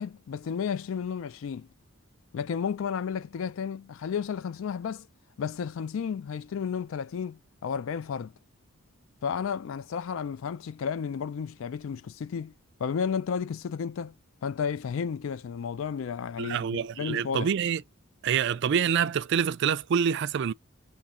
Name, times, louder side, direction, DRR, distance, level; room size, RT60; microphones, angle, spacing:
voice 1, 0.0-1.7 2.3-5.1 5.4-8.3 9.2-12.5 12.8-14.1 14.4-17.5, left 6 dB, 65° left, 0.3 m, -32 dB
voice 2, 16.4-17.8 18.2-20.5, right 7 dB, 55° right, 0.3 m, -26 dB
3.6 x 3.2 x 4.3 m
head